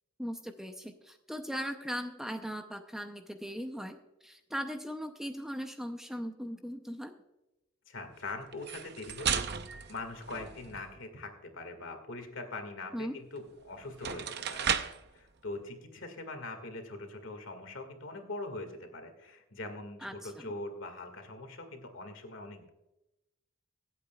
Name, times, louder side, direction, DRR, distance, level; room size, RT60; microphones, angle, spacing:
voice 1, 0.2-7.1 12.9-13.2 20.0-20.5, equal, ahead, 6 dB, 0.6 m, -39 dB
voice 2, 7.9-9.4 9.9-14.7 15.1-22.7, left 2 dB, 65° left, 6 dB, 2.0 m, -42 dB
sound 1, 8.5-10.9 13.4-13.5 13.9-15.1, right 7 dB, 50° right, 0.7 m, -34 dB
24.5 x 8.3 x 2.3 m, 0.95 s
head